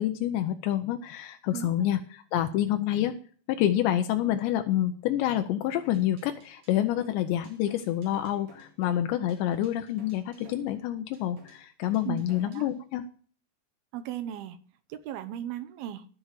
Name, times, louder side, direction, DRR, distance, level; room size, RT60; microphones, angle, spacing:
voice 1, 0.0-3.2 3.5-13.0, left 12 dB, 85° left, 7 dB, 3.0 m, -28 dB
voice 2, 1.5-1.9 12.1-12.7 13.9-14.6 14.9-16.1, right 11 dB, 75° right, 9 dB, 2.5 m, -37 dB
sound 1, 5.8-12.7, right 2 dB, 45° right, 3.0 m, -55 dB
13.5 x 6.1 x 6.6 m, 0.42 s
omnidirectional pair, 5.1 m